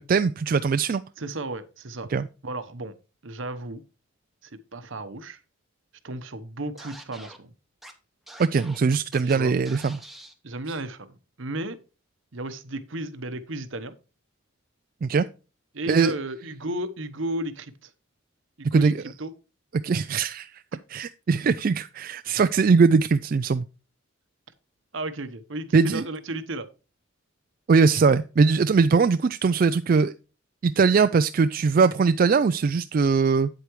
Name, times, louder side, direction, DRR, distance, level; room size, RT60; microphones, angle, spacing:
voice 1, 0.0-1.0 2.1-2.3 8.4-10.0 15.0-15.2 15.9-16.1 18.7-18.9 19.8-20.5 20.9-23.7 25.7-26.0 27.7-30.1 30.6-33.5, right 5 dB, 45° right, 11 dB, 0.3 m, -21 dB
voice 2, 1.2-2.1 2.4-2.9 3.2-3.8 4.4-5.4 6.0-7.5 9.2-9.5 10.4-11.8 12.3-13.9 15.7-17.9 18.6-18.9 19.2-19.3 24.9-26.7, right 1 dB, 70° right, 12 dB, 1.0 m, -34 dB
Scratching (performance technique), 6.8-7.4 7.8-7.9 8.3-9.4 9.6-10.3, right 1 dB, ahead, 0.9 m, -45 dB
9.0 x 8.1 x 3.1 m, 0.32 s
head